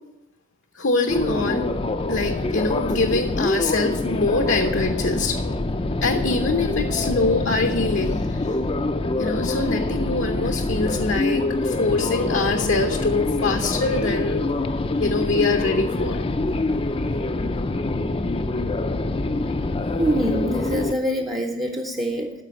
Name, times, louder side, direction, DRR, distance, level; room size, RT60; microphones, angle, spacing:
voice 1, 0.7-1.7 2.1-5.4 6.0-8.5 9.2-14.5 15.0-16.2, left 3 dB, 65° left, 5 dB, 0.8 m, -24 dB
sound 1, 1.1-20.9, left 2 dB, 30° left, 0.5 m, -25 dB
voice 2, 20.0-22.3, equal, 20° right, 1 dB, 0.7 m, -24 dB
13.0 x 5.0 x 7.6 m, 0.96 s
head